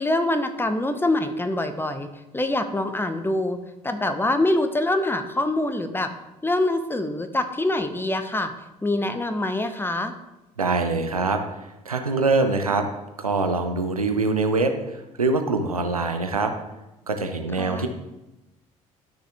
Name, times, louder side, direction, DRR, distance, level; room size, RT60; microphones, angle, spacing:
voice 1, 0.0-2.1 2.3-3.6 3.8-6.1 6.4-8.5 8.8-10.1 17.6-17.9, left 1 dB, 10° left, 8 dB, 1.0 m, -24 dB
voice 2, 10.6-12.9 13.2-16.5 17.1-17.9, right 3 dB, 90° right, 6 dB, 0.7 m, -24 dB
12.0 x 6.4 x 3.5 m, 0.98 s
figure-of-eight pair, 55°, 18 cm